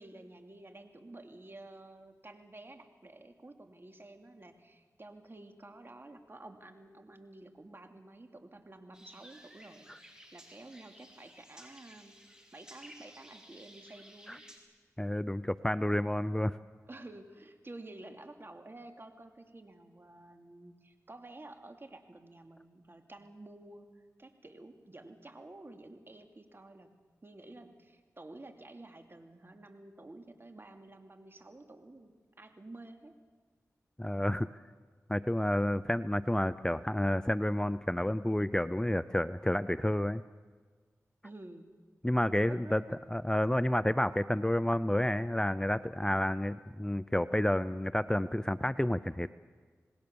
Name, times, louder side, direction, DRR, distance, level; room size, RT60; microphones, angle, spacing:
voice 1, 0.0-12.1 12.5-14.4 16.9-26.9 27.2-32.1 32.4-33.2 41.2-41.7 42.5-43.0, right 2 dB, 40° right, 5 dB, 2.7 m, -51 dB
sound 1, 8.9-14.6, equal, 10° right, 4.9 m, -55 dB
voice 2, 15.0-16.6 34.0-34.5 35.1-40.2 42.0-42.8 43.1-49.3, left 1 dB, 10° left, 14 dB, 0.6 m, -30 dB
27.0 x 19.5 x 7.0 m, 1.5 s
cardioid pair, 45°, 6 cm